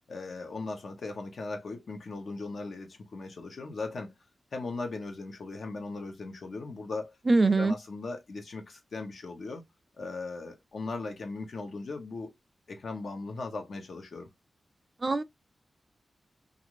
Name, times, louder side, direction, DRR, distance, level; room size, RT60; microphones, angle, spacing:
voice 1, 0.1-4.1 4.5-7.1 7.6-9.6 10.0-12.3 12.7-14.3, left 3 dB, 70° left, 0.9 m, -38 dB
voice 2, 7.3-7.8 15.0-15.2, right 3 dB, 35° right, 0.3 m, -23 dB
2.5 x 2.5 x 3.0 m
wide cardioid pair, 95°, 0 cm